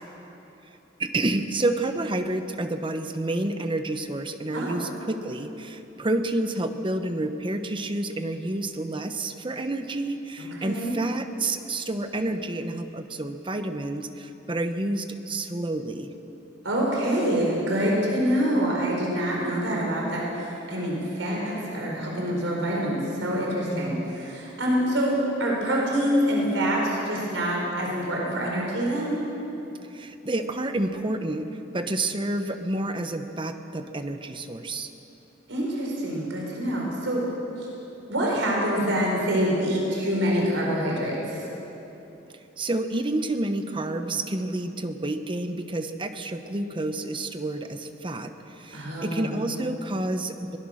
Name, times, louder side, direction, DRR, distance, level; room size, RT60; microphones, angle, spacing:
voice 1, 1.0-16.1 19.4-19.9 23.7-24.1 29.9-34.9 42.6-50.6, right 2 dB, 25° right, 8 dB, 1.0 m, -29 dB
voice 2, 10.4-11.0 16.6-29.2 35.5-37.2 37.6-37.7 38.0-41.4 48.7-49.3, equal, 90° right, -2 dB, 4.6 m, -26 dB
22.0 x 18.5 x 6.5 m, 3.0 s
head